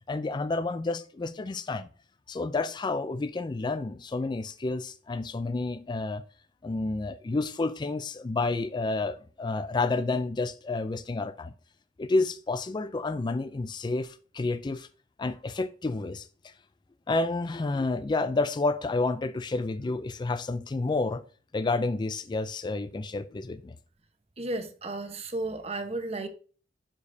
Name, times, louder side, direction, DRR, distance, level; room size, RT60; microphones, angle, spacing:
voice 1, 0.1-1.9 2.3-6.2 6.6-11.5 12.0-14.9 15.2-16.5 17.1-21.2 21.5-23.8, left 3 dB, 25° left, 0.3 m, -30 dB
voice 2, 24.4-26.3, right 2 dB, 35° right, 1.0 m, -33 dB
11.5 x 5.0 x 2.7 m
head